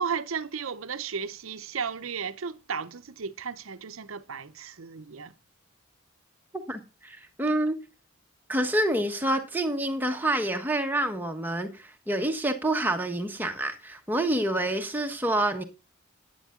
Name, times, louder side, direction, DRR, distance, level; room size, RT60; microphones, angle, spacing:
voice 1, 0.0-5.3, right 6 dB, 70° right, 0.7 m, -34 dB
voice 2, 6.5-7.8 8.5-15.6, right 1 dB, 10° right, 1.2 m, -27 dB
10.0 x 9.4 x 3.7 m
head